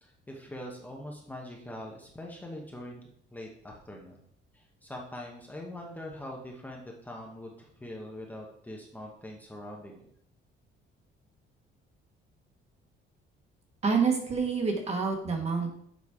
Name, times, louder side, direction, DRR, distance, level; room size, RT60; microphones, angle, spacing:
voice 1, 0.0-3.0 3.3-4.2 4.5-10.1, left 1 dB, 10° left, -1 dB, 0.9 m, -43 dB
voice 2, 13.8-15.7, right 5 dB, 30° right, 3 dB, 1.3 m, -27 dB
7.3 x 5.2 x 4.7 m, 0.69 s
cardioid pair, 175°, 21 cm